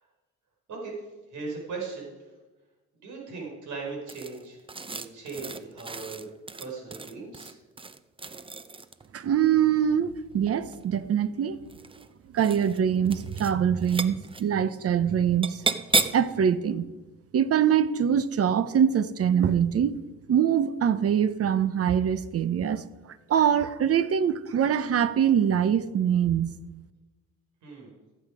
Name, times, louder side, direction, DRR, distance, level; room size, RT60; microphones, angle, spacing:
voice 1, 1.3-2.1 3.0-4.6 4.8-6.3 6.6-7.5 27.6-27.9, right 4 dB, 75° right, 4.8 m, -38 dB
sound 1, 4.1-9.1 10.3-11.0 11.6-12.1 12.4-12.8 13.0-13.5 13.8-14.4 15.4-16.3, right 3 dB, 15° right, 0.6 m, -32 dB
voice 2, 9.1-11.6 12.3-15.6 16.1-16.9 17.3-20.0 20.3-22.8 23.3-26.6, right 8 dB, 50° right, 0.8 m, -23 dB
15.0 x 8.0 x 5.0 m
cardioid pair, 90°, 30 cm